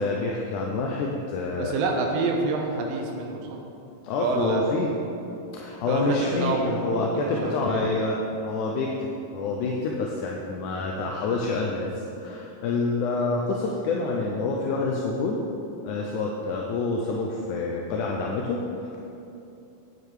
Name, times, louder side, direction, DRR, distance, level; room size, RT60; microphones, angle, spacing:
voice 1, 0.0-1.7 4.0-4.9 5.5-9.1 9.3-15.4 15.8-19.0, left 3 dB, 75° left, -1 dB, 2.0 m, -27 dB
voice 2, 1.6-3.6 4.2-4.6 5.9-7.8, right 3 dB, 65° right, 1 dB, 1.8 m, -27 dB
9.9 x 7.9 x 4.9 m, 2.8 s
omnidirectional pair, 3.9 m